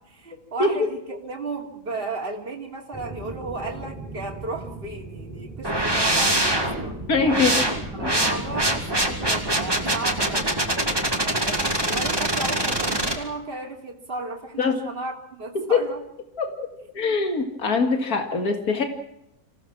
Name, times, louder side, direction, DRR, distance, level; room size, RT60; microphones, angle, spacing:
voice 1, 0.1-7.0 7.9-10.6 11.2-16.0 17.0-17.2 17.5-17.9, right 3 dB, 35° right, 0 dB, 2.9 m, -34 dB
sound 1, 2.9-9.7, right 3 dB, 5° left, 7.4 m, -40 dB
sound 2, 5.6-13.1, right 1 dB, 15° right, 2.7 m, -24 dB
voice 2, 7.1-7.6 8.0-8.1 14.6-14.8 15.5-15.8 16.4-16.7 16.9-18.8, left 4 dB, 75° left, 5 dB, 2.5 m, -23 dB
26.5 x 17.0 x 6.1 m, 0.79 s
omnidirectional pair, 1.6 m